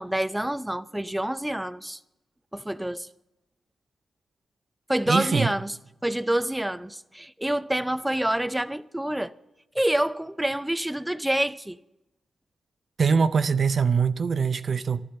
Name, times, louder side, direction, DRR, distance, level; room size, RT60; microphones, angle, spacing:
voice 1, 0.0-2.0 2.5-3.1 4.9-5.7 6.0-9.3 9.7-11.8, right 1 dB, 10° right, 0.5 m, -27 dB
voice 2, 5.1-5.5 13.0-15.0, right 5 dB, 60° right, 0.5 m, -23 dB
12.0 x 11.5 x 6.8 m
supercardioid pair, 45°, 0 cm